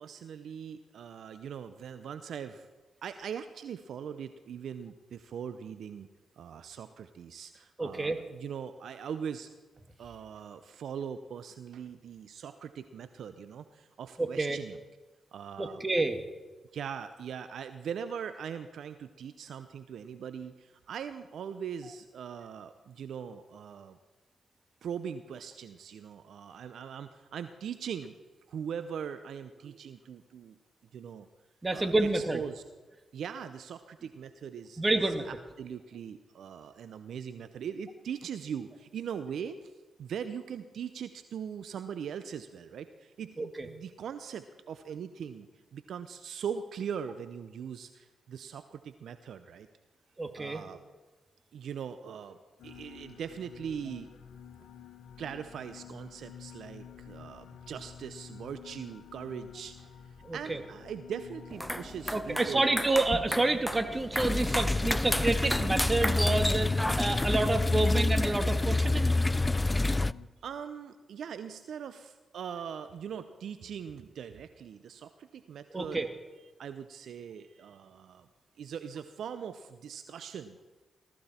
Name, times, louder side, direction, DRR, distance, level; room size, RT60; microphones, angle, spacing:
voice 1, 0.0-2.7 3.0-6.1 6.4-9.5 10.0-14.8 15.3-15.8 16.7-24.0 24.8-28.2 28.5-30.6 30.9-31.3 31.7-32.6 33.1-39.7 40.0-49.7 50.3-50.8 51.5-52.4 52.6-54.1 55.2-59.9 60.3-62.7 68.7-68.9 70.4-76.0 76.6-78.3 78.6-80.8, right 7 dB, 75° right, 11 dB, 0.7 m, -41 dB
voice 2, 7.8-8.2 14.2-14.6 15.6-16.2 31.6-32.4 34.8-35.3 43.4-43.7 50.2-50.6 60.2-60.6 62.1-69.1 75.7-76.1, right 2 dB, 30° right, 7 dB, 2.1 m, -29 dB
sound 1, 52.6-70.3, left 8 dB, 75° left, 1.3 m, -50 dB
sound 2, 61.5-67.5, equal, ahead, 0.9 m, -34 dB
sound 3, 64.2-70.1, left 2 dB, 25° left, 0.4 m, -27 dB
19.0 x 14.0 x 4.4 m, 1.2 s
hypercardioid pair, 40°, 0 cm